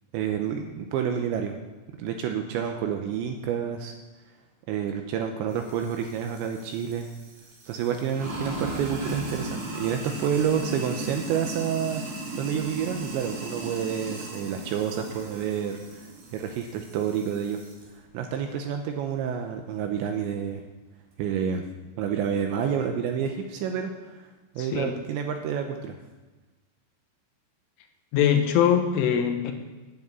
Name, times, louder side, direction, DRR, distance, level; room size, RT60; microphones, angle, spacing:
voice 1, 0.1-1.6 2.0-3.9 4.7-7.1 7.7-12.0 12.4-17.6 18.1-20.6 21.2-21.6 22.0-24.3 24.6-26.0, right 8 dB, 80° right, 4 dB, 2.8 m, -29 dB
Sink (filling or washing), 5.5-17.8, right 2 dB, 50° right, 3.9 m, -37 dB
voice 2, 24.6-24.9 28.1-29.5, left 9 dB, 80° left, 5 dB, 3.4 m, -22 dB
9.8 x 8.8 x 8.1 m, 1.2 s
omnidirectional pair, 5.9 m